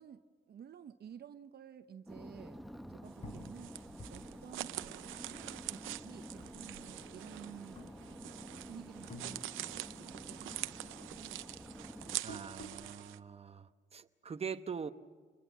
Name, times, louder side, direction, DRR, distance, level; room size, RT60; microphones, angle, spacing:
voice 1, 0.0-3.7 4.1-11.9, right 8 dB, 55° right, 9 dB, 0.9 m, -53 dB
sound 1, 2.1-12.2, equal, ahead, 0.9 m, -50 dB
sound 2, 3.1-13.2, right 15 dB, 90° right, 0.7 m, -45 dB
sound 3, 3.2-6.1 6.4-7.2 7.7-8.6 8.9-10.2 10.5-12.9, left 1 dB, 35° left, 4.6 m, -52 dB
voice 2, 12.2-14.9, right 6 dB, 30° right, 9 dB, 1.0 m, -43 dB
27.0 x 21.5 x 7.4 m, 1.5 s
cardioid pair, 90°, 20 cm